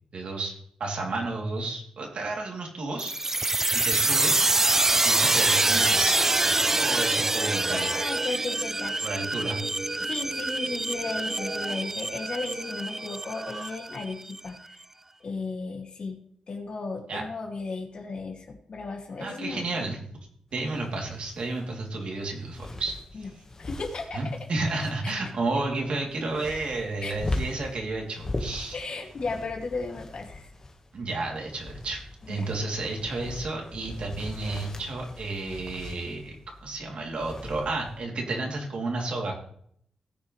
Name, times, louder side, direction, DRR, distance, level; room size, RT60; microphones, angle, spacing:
voice 1, 0.1-0.5 0.8-3.1 3.7-4.4 5.0-7.9 9.0-9.6 17.1-17.2 19.2-20.0 20.5-23.3 24.1-28.8 30.9-32.0 32.3-39.3, right 2 dB, 60° right, 0 dB, 3.2 m, -32 dB
sound 1, 3.0-14.4, right 2 dB, 20° right, 0.4 m, -25 dB
voice 2, 7.6-9.0 10.0-14.8 15.2-16.2 16.5-19.9 23.1-23.3 23.6-24.2 25.0-25.1 27.0-27.1 28.7-30.5 32.3-32.5, left 3 dB, 55° left, 1 dB, 2.6 m, -35 dB
sound 2, 20.5-38.0, left 2 dB, 30° left, 1.6 m, -40 dB
19.0 x 6.9 x 3.4 m, 0.67 s
wide cardioid pair, 120°, 2 cm